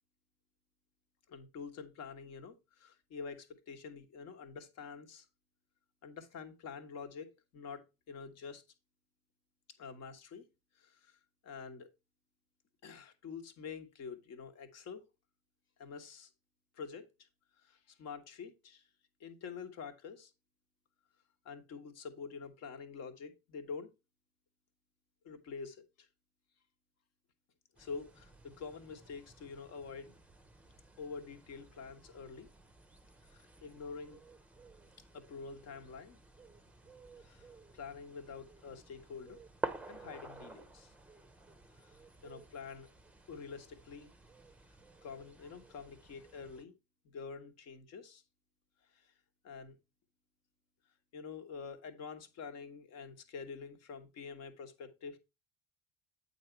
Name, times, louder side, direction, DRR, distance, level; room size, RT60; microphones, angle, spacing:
voice 1, 1.3-5.3 6.0-8.6 9.8-10.4 10.7-11.9 12.8-15.0 15.8-16.3 16.7-17.3 17.6-18.9 19.2-20.3 21.4-23.9 25.2-26.1 27.8-30.1 31.0-32.5 33.3-34.2 35.1-36.2 37.2-37.5 37.7-39.4 39.9-40.9 41.8-42.9 43.3-44.1 45.0-46.7 47.0-48.2 48.9-49.1 49.4-49.8 51.1-55.2, left 5 dB, 50° left, 1.2 m, -47 dB
sound 1, 27.8-46.6, right 3 dB, 5° right, 0.7 m, -51 dB
8.4 x 4.0 x 4.4 m
hypercardioid pair, 65°, 32 cm